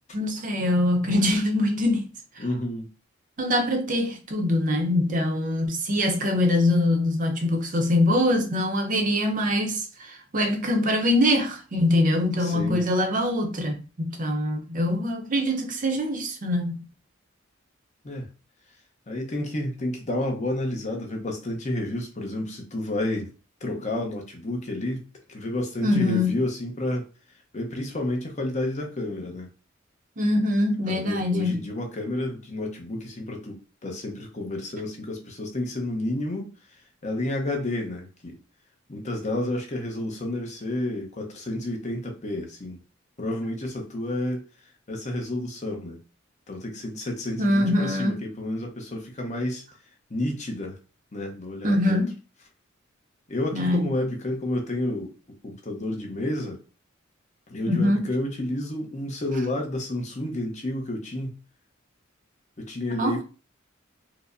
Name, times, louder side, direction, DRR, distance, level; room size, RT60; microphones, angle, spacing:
voice 1, 0.1-2.1 3.4-16.9 25.8-26.3 30.2-31.6 47.4-48.2 51.6-52.1 53.5-53.9 57.7-58.1 63.0-63.2, left 1 dB, 40° right, 0.6 m, -23 dB
voice 2, 2.4-2.9 12.4-12.8 18.0-18.3 19.1-23.3 23.6-27.1 27.5-29.5 30.9-36.5 37.0-38.4 38.9-42.8 43.2-44.4 44.9-46.0 46.5-49.6 50.1-50.8 51.1-52.0 53.3-55.1 55.4-56.6 57.5-61.4 62.6-63.2, left 1 dB, 35° left, 0.7 m, -30 dB
4.6 x 2.0 x 2.5 m
head